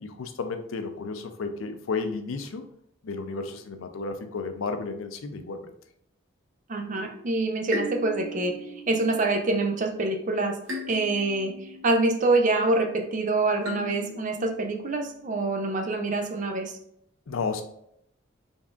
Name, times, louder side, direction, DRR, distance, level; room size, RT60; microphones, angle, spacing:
voice 1, 0.0-2.6 3.0-5.7 17.3-17.6, left 4 dB, 75° left, 8 dB, 0.5 m, -32 dB
voice 2, 6.7-8.6 8.9-10.6 10.9-11.5 11.8-16.8, right 2 dB, 40° right, 4 dB, 0.5 m, -25 dB
sound 1, 7.2-7.3 7.7-10.1 10.7-12.7 13.6-15.2, left 1 dB, 75° right, 0.9 m, -39 dB
4.0 x 3.4 x 2.4 m, 0.73 s
head